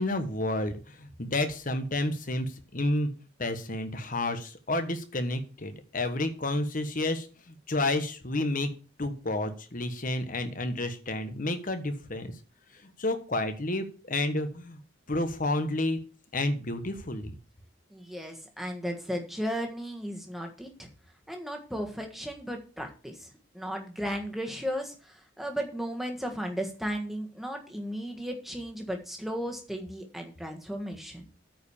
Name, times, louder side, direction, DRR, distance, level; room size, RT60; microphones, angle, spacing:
voice 1, 0.0-3.1 3.4-8.7 9.0-12.3 12.7-14.8 15.1-16.0 16.3-17.4, left 2 dB, 40° left, 8 dB, 1.2 m, -30 dB
voice 2, 17.9-20.9 21.3-23.3 23.5-31.2, equal, ahead, 2 dB, 1.6 m, -35 dB
9.2 x 5.1 x 7.1 m, 0.37 s
head